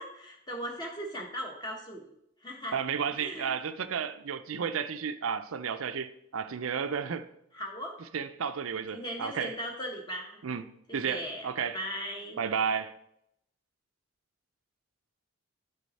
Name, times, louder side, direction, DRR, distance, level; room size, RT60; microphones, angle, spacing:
voice 1, 0.0-2.1 2.4-2.8 3.2-3.5 7.5-8.0 8.9-10.4 11.1-12.4, equal, 20° left, 1.0 m, -38 dB
voice 2, 2.7-7.3 8.1-9.6 10.4-10.6 10.9-11.8 12.4-12.9, right 6 dB, 80° right, 0.5 m, -32 dB
11.5 x 4.0 x 4.1 m
head